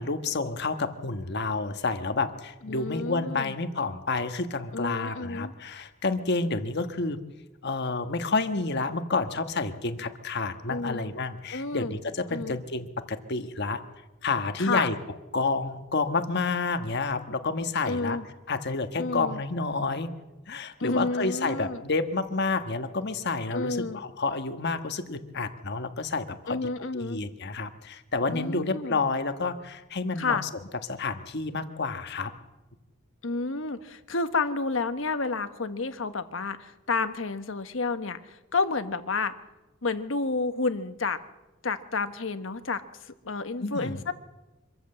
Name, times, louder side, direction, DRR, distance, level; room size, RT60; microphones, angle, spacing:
voice 1, 0.0-7.2 7.6-13.8 14.2-15.0 15.3-18.2 18.5-20.1 20.5-30.4 30.9-32.3 43.6-44.0, left 3 dB, 55° left, 8 dB, 1.4 m, -29 dB
voice 2, 2.6-3.5 4.7-5.5 10.7-11.1 11.5-12.0 12.3-12.6 14.6-14.9 17.9-18.2 19.0-19.4 20.8-21.8 23.5-24.0 26.5-27.2 28.3-29.0 30.2-30.4 33.2-39.3 39.8-41.2 41.6-42.8 43.2-44.1, left 3 dB, 75° left, 10 dB, 1.3 m, -30 dB
25.0 x 14.0 x 7.8 m, 1.1 s
head